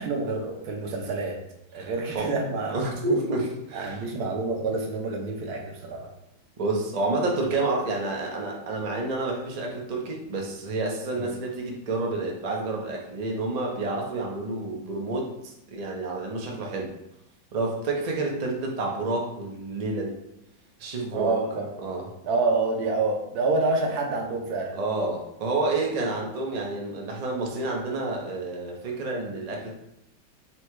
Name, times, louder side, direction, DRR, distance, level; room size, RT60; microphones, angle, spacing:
voice 1, 0.0-1.4 1.7-2.9 3.7-6.1 11.1-11.3 16.5-16.6 21.1-21.7 22.2-24.8, right 3 dB, 70° right, 2 dB, 1.1 m, -27 dB
voice 2, 1.8-2.3 2.7-4.0 6.6-16.9 17.5-20.2 20.8-21.3 21.8-22.0 24.7-29.7, right 2 dB, 85° right, -1 dB, 0.3 m, -29 dB
4.2 x 2.2 x 4.5 m, 0.83 s
omnidirectional pair, 1.9 m